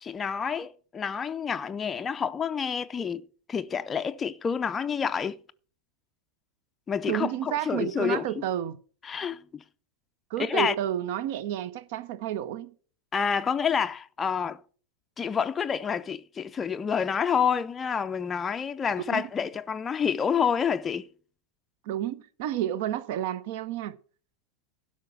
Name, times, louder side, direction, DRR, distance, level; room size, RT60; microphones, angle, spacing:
voice 1, 0.0-3.2 3.5-5.4 6.9-8.3 9.0-9.6 10.4-10.7 13.1-14.6 15.2-21.1, left 7 dB, 20° left, 0.5 m, -28 dB
voice 2, 7.1-8.8 10.3-12.7 19.1-19.3 21.9-24.0, right 11 dB, 50° right, 0.7 m, -31 dB
12.0 x 5.7 x 7.2 m
figure-of-eight pair, 90°, 0 cm